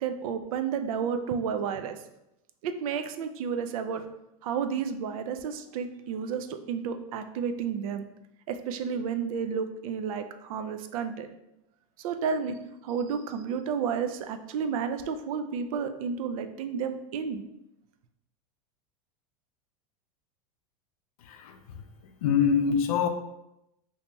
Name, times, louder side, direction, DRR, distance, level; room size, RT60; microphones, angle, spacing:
voice 1, 0.0-2.0 2.6-4.1 4.4-8.0 8.5-11.3 12.0-17.4, right 6 dB, 75° right, 8 dB, 0.4 m, -31 dB
voice 2, 22.2-23.1, left 7 dB, 85° left, 6 dB, 0.5 m, -24 dB
2.9 x 2.8 x 3.3 m, 0.86 s
supercardioid pair, 150°, 18 cm